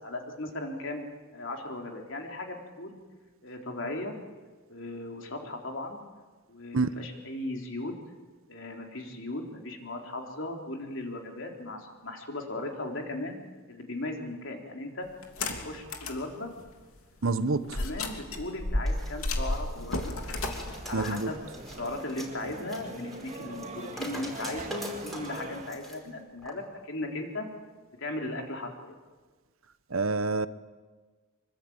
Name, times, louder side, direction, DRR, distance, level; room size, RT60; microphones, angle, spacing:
voice 1, 0.0-1.1 1.3-3.0 3.4-4.2 4.7-6.0 6.5-7.9 8.5-13.4 13.7-15.1 15.6-16.5 17.7-20.4 20.8-21.4 21.8-27.5 28.0-29.0, left 2 dB, 60° left, 4.0 m, -37 dB
sound 1, 15.2-16.2 16.7-16.8 17.7-22.0, left 2 dB, 75° left, 3.1 m, -32 dB
voice 2, 17.2-17.8 20.9-21.3 29.9-30.5, right 3 dB, 65° right, 1.0 m, -27 dB
sound 2, 18.9-26.0 26.4-26.5, equal, ahead, 4.9 m, -44 dB
sound 3, 20.7-25.7, right 2 dB, 30° right, 2.0 m, -43 dB
25.5 x 24.0 x 9.0 m
head